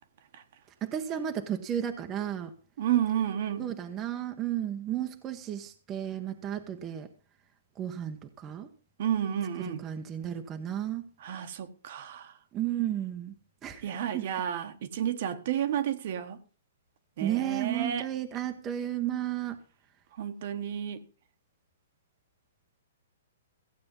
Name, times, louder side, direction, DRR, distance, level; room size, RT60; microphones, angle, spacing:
voice 1, 0.8-2.5 3.6-7.1 7.8-8.2 8.4-8.7 9.8-11.0 12.5-13.3 13.6-13.8 14.1-14.3 17.2-19.5, right 11 dB, 20° right, 1.1 m, -33 dB
voice 2, 2.8-3.7 9.0-9.8 11.2-12.3 13.8-16.4 17.2-18.1 20.2-21.0, right 10 dB, 50° right, 1.4 m, -31 dB
15.5 x 8.6 x 5.5 m
hypercardioid pair, 160°, 0 cm